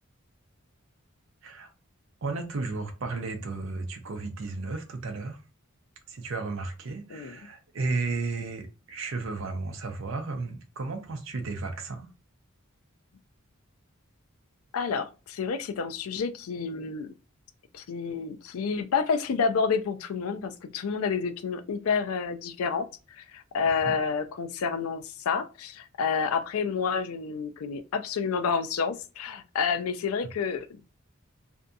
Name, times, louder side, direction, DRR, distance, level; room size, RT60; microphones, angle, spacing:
voice 1, 2.2-5.4 6.1-12.1 23.7-24.0, right 3 dB, 65° right, 0.5 m, -34 dB
voice 2, 7.1-7.4 14.7-17.1 17.7-22.9 23.1-30.8, left 5 dB, 85° left, 0.4 m, -29 dB
2.6 x 2.5 x 2.3 m
head